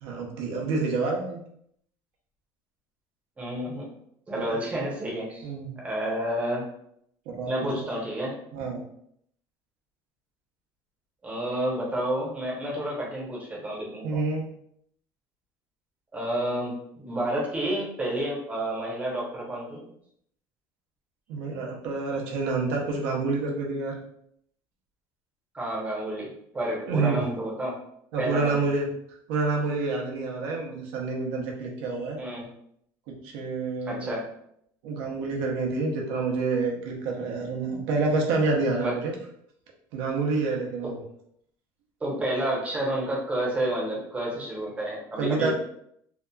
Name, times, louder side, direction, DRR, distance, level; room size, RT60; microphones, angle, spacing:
voice 1, 0.0-1.4 4.4-4.6 5.4-5.7 7.3-7.8 8.5-8.8 14.0-14.5 21.3-24.0 26.9-27.2 28.1-28.9 29.3-32.2 33.2-34.1 34.8-39.1 39.9-41.0 45.2-45.5, right 3 dB, 80° right, -1 dB, 0.7 m, -28 dB
voice 2, 3.4-3.9 4.3-5.5 5.8-6.6 7.5-8.3 11.2-14.2 16.1-19.8 25.5-26.3 26.5-27.8 28.2-28.6 32.2-32.5 33.8-34.3 38.8-38.9 42.0-45.5, right 1 dB, 15° right, -4 dB, 0.8 m, -30 dB
2.7 x 2.3 x 2.2 m, 0.70 s
cardioid pair, 150°, 8 cm